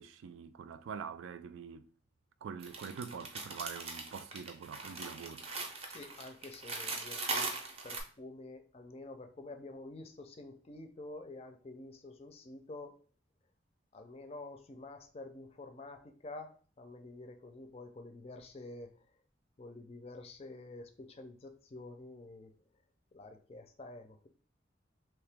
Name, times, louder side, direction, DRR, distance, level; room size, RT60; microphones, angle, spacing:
voice 1, 0.0-1.9 2.4-5.5, right 6 dB, 90° right, 0.3 m, -45 dB
sound 1, 2.6-8.0, right 3 dB, 30° right, 0.6 m, -40 dB
voice 2, 5.9-7.5 7.8-13.0 13.9-16.5 16.8-18.9 19.6-22.5 23.1-24.3, left 2 dB, 35° left, 0.4 m, -48 dB
3.0 x 2.9 x 3.4 m
head